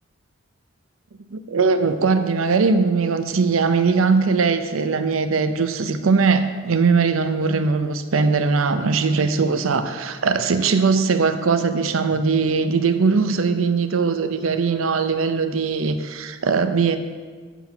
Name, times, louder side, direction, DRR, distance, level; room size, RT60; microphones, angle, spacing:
voice 1, 1.3-17.0, right 4 dB, 90° right, 10 dB, 0.6 m, -20 dB
8.1 x 6.1 x 5.7 m, 1.6 s
head